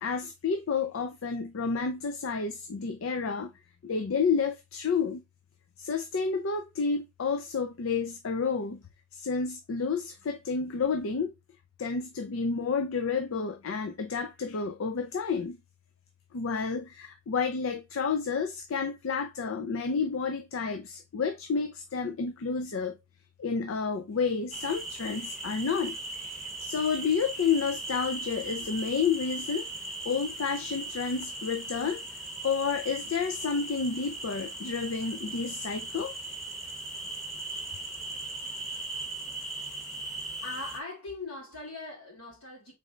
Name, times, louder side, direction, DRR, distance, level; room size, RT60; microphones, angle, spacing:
voice 1, 0.0-3.5 3.8-5.2 5.8-8.8 9.1-11.3 11.8-15.6 16.3-23.0 23.4-26.0 26.6-29.7 30.0-32.0 32.4-36.1, left 5 dB, 65° left, 0.5 m, -30 dB
sound 1, 24.5-40.8, right 2 dB, ahead, 0.9 m, -38 dB
voice 2, 40.4-42.7, left 3 dB, 80° left, 2.8 m, -40 dB
4.1 x 3.2 x 3.6 m
head